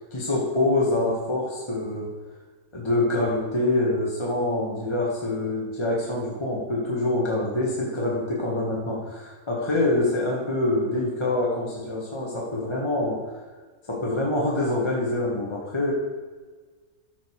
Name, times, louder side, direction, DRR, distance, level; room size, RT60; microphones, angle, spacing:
voice 1, 0.1-2.1 2.7-13.4 13.9-15.9, left 2 dB, 20° left, -4 dB, 1.2 m, -25 dB
13.0 x 5.2 x 4.7 m, 1.4 s
omnidirectional pair, 1.5 m